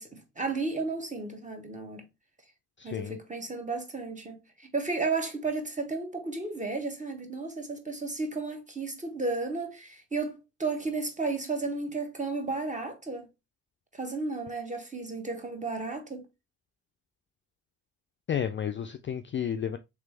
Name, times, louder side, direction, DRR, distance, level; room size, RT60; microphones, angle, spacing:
voice 1, 0.0-2.0 2.8-13.3 13.9-16.2, right 3 dB, 20° right, 1.2 m, -33 dB
voice 2, 2.8-3.2 18.3-19.8, left 8 dB, 30° left, 0.4 m, -32 dB
3.4 x 3.2 x 3.2 m
hypercardioid pair, 50°, 39 cm